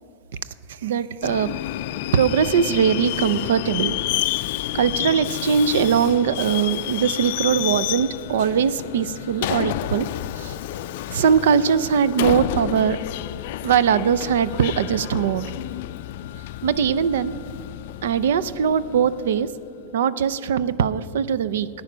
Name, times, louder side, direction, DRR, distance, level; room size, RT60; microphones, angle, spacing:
voice 1, 0.7-1.5 2.1-4.0 4.7-10.1 10.4-10.6 11.1-13.0 13.6-15.5 16.6-17.3 18.0-19.5 19.9-21.7, right 7 dB, 85° right, 17 dB, 0.5 m, -21 dB
Subway metro underground, 1.2-19.7, left 15 dB, 50° left, 0.3 m, -30 dB
14.0 x 9.8 x 6.1 m, 2.9 s
supercardioid pair, 175°, 0 cm